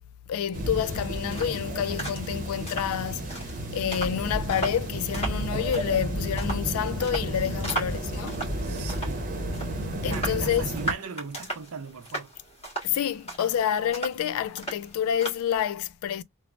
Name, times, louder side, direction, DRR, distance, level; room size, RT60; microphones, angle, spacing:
voice 1, 0.3-8.5 10.0-10.6 12.8-16.2, left 9 dB, 80° left, 0.3 m, -28 dB
sound 1, 0.5-10.9, right 1 dB, 35° right, 0.8 m, -32 dB
sound 2, 0.7-15.7, right 2 dB, 30° left, 1.5 m, -38 dB
voice 2, 7.5-7.9 8.6-9.3 10.1-12.3, right 5 dB, 90° right, 0.6 m, -39 dB
3.1 x 2.0 x 2.4 m
head